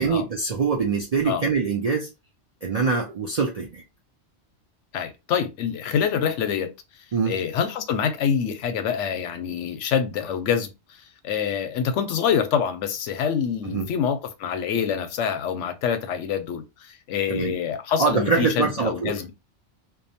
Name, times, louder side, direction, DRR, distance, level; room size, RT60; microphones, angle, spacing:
voice 1, 0.0-2.1 2.6-3.8 7.1-7.4 13.7-13.9 17.3-17.5 18.0-19.1, right 5 dB, 65° right, 0.3 m, -24 dB
voice 2, 4.9-6.7 7.3-10.7 11.2-19.3, left 7 dB, 90° left, 0.9 m, -26 dB
2.7 x 2.1 x 2.7 m
omnidirectional pair, 1.2 m